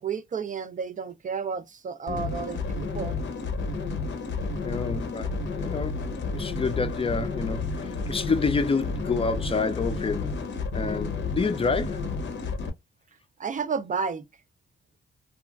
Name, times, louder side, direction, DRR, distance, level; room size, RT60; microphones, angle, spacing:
voice 1, 0.0-3.2 13.4-14.2, right 6 dB, 40° right, 0.4 m, -31 dB
sound 1, 2.1-12.7, left 4 dB, 70° left, 0.7 m, -31 dB
voice 2, 4.6-6.0 6.3-10.4 10.7-12.1, left 4 dB, 30° left, 0.4 m, -28 dB
3.0 x 2.4 x 2.2 m
cardioid pair, 70°, 20 cm